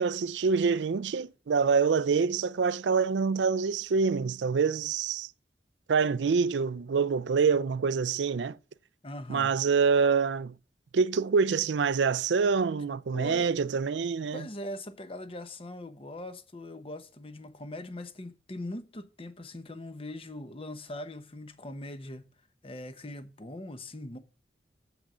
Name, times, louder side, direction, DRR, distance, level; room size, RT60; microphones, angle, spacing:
voice 1, 0.0-5.3 5.9-8.6 9.3-10.5 10.9-14.4, right 5 dB, 90° right, 0.4 m, -26 dB
voice 2, 9.0-9.5 13.1-13.5 14.3-22.2 22.6-24.2, left 1 dB, 30° left, 1.0 m, -41 dB
8.4 x 7.7 x 5.0 m
head